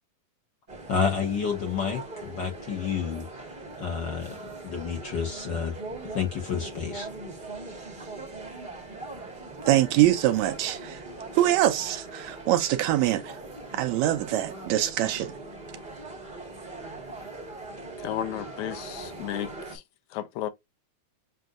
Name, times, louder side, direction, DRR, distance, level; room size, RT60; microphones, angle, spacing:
sound 1, 0.7-19.8, right 2 dB, 35° right, 0.7 m, -41 dB
voice 1, 0.9-3.2 3.8-4.4 4.6-5.7 6.1-7.1, left 6 dB, 55° left, 1.3 m, -29 dB
voice 2, 9.7-11.0 11.3-13.4 13.7-15.4, right 13 dB, 80° right, 1.8 m, -24 dB
voice 3, 18.0-19.8 20.1-20.5, left 12 dB, 80° left, 2.0 m, -33 dB
7.7 x 2.7 x 2.4 m
omnidirectional pair, 3.5 m